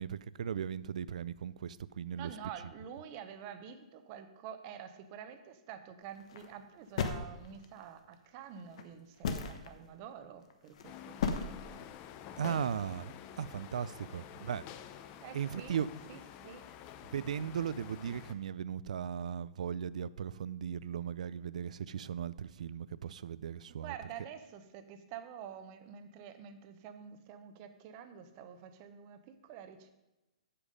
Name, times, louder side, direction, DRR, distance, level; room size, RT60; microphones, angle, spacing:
voice 1, 0.0-2.3 12.4-14.6 15.3-15.9 17.1-24.0, right 8 dB, 80° right, 19 dB, 0.4 m, -37 dB
voice 2, 2.1-11.9 15.2-15.8 16.1-16.7 23.8-29.9, right 8 dB, 35° right, 10 dB, 0.8 m, -48 dB
sound 1, 6.1-6.5 7.0-7.8 8.7-8.8 9.2-9.7 10.5-10.8 11.2-11.4, left 5 dB, 60° left, 1.1 m, -33 dB
sound 2, 10.8-18.3, left 9 dB, 30° left, 0.5 m, -49 dB
8.5 x 7.1 x 5.2 m, 1.0 s
hypercardioid pair, 160°, 4 cm